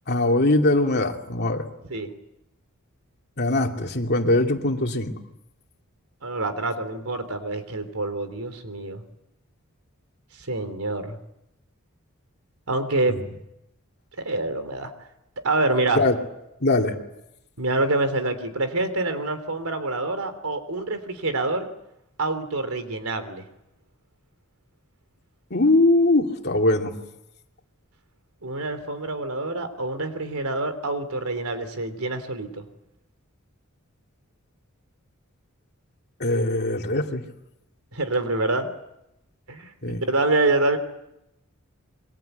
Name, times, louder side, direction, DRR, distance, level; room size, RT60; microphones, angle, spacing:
voice 1, 0.1-1.7 3.4-5.1 13.1-13.2 16.0-16.2 16.6-16.9 25.5-26.9 36.2-37.2 39.8-40.0, left 2 dB, 50° left, 3 dB, 2.6 m, -21 dB
voice 2, 6.2-9.0 10.4-11.2 12.7-13.2 14.2-14.9 15.4-16.1 17.6-21.7 22.2-23.4 28.4-32.7 37.9-38.7 39.5-40.8, right 2 dB, 90° right, 9 dB, 3.3 m, -26 dB
27.5 x 23.0 x 8.1 m, 0.87 s
head